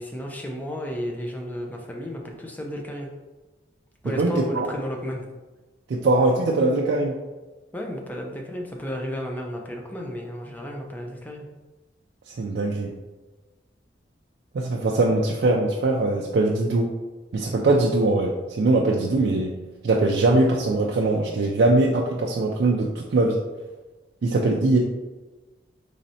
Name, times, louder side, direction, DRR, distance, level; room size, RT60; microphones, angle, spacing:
voice 1, 0.0-3.1 4.0-5.3 7.7-11.5, equal, 10° left, 1 dB, 0.4 m, -33 dB
voice 2, 4.0-4.7 5.9-7.2 12.3-12.9 14.5-16.9 17.3-19.5 19.8-23.4 24.2-24.8, right 2 dB, 55° right, -1 dB, 0.3 m, -21 dB
4.0 x 3.1 x 2.7 m, 1.2 s
head